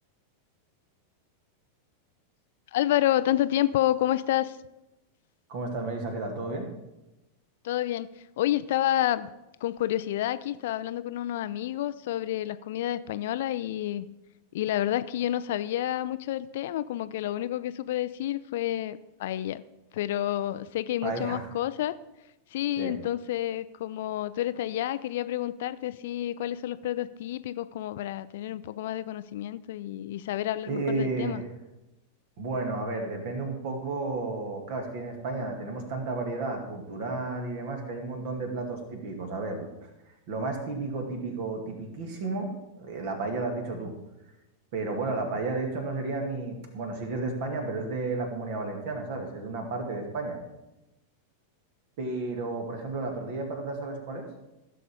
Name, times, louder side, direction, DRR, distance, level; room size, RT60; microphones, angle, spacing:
voice 1, 2.7-4.6 7.6-8.1 8.4-9.3 9.6-14.1 14.5-19.6 19.9-22.0 22.5-31.4, left 13 dB, 55° left, 15 dB, 0.4 m, -29 dB
voice 2, 5.5-6.7 21.0-21.4 22.8-23.0 30.7-31.4 32.4-39.9 40.3-44.0 44.7-50.4 52.0-54.3, right 3 dB, 50° right, 4 dB, 2.2 m, -32 dB
15.0 x 6.6 x 4.8 m, 0.97 s
figure-of-eight pair, 90°, 0 cm